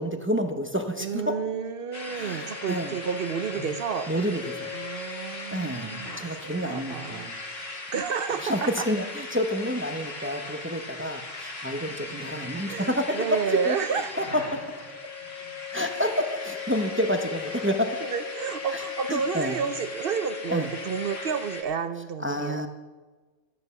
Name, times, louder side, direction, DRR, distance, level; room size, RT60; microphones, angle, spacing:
voice 1, 0.0-1.4 2.1-3.0 4.1-4.7 5.5-7.3 8.4-13.0 13.6-14.4 15.7-18.0 18.7-18.8 19.1-19.6 20.5-20.7 22.2-22.7, equal, 10° right, 6 dB, 0.6 m, -29 dB
voice 2, 1.0-4.1 4.7-7.3 7.9-8.9 12.6-14.1 18.0-22.7, right 7 dB, 55° right, 12 dB, 0.6 m, -31 dB
sound 1, 1.9-21.6, left 4 dB, 45° left, 2.0 m, -37 dB
13.0 x 8.8 x 6.9 m, 1.3 s
omnidirectional pair, 1.5 m